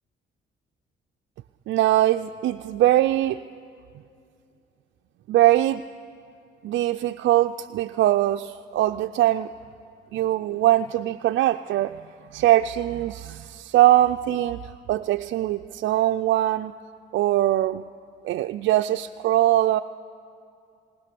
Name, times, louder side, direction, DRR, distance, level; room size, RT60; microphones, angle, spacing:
voice 1, 1.7-3.4 5.3-5.8 6.6-9.5 10.1-12.0 12.3-14.6 14.9-16.7 17.1-17.9 18.2-19.8, right 14 dB, 70° right, 7 dB, 0.4 m, -21 dB
19.5 x 19.5 x 6.9 m, 2.5 s
cardioid pair, 90°, 20 cm